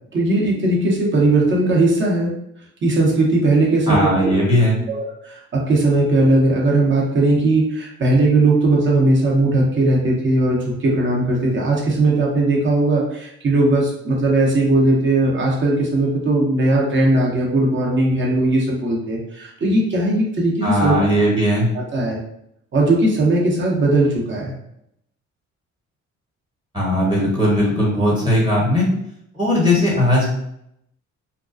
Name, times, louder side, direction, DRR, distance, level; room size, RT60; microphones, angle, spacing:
voice 1, 0.1-2.3 2.8-4.4 4.9-20.9 21.9-22.2 22.7-24.5, right 2 dB, 40° right, -2 dB, 0.8 m, -18 dB
voice 2, 3.9-4.8 20.6-21.7 26.7-28.9 29.3-30.3, equal, 15° right, -4 dB, 1.0 m, -18 dB
2.3 x 2.2 x 2.4 m, 0.75 s
cardioid pair, 90°, 30 cm